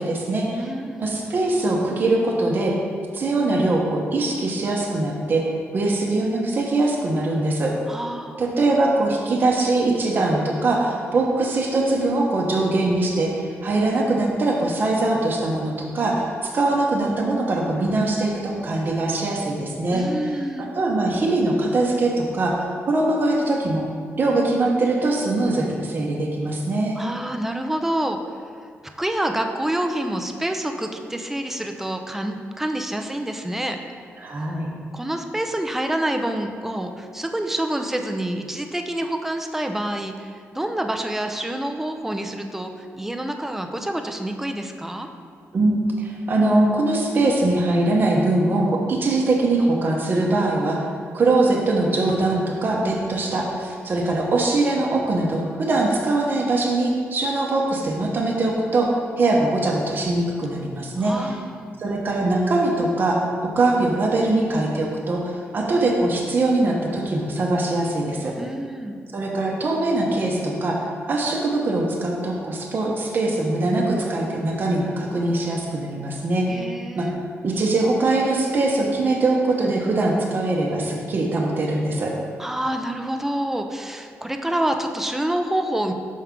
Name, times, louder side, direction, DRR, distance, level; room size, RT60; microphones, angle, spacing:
voice 1, 0.0-0.6 1.0-2.8 3.1-7.7 8.4-20.0 20.6-23.9 24.2-27.0 34.2-34.7 45.5-50.9 51.1-58.9 59.2-61.3 61.8-68.3 69.1-70.8 71.1-76.7 77.0-77.1 77.4-82.1, right 2 dB, 45° right, -1 dB, 0.8 m, -22 dB
voice 2, 0.6-1.1 7.9-8.5 19.9-20.7 27.0-28.2 29.0-33.8 34.3-34.6 34.9-45.1 61.0-61.7 68.4-69.0 76.5-77.2 82.4-85.9, right 1 dB, 5° right, 5 dB, 0.4 m, -27 dB
5.7 x 4.7 x 3.7 m, 2.1 s
cardioid pair, 110°, 5 cm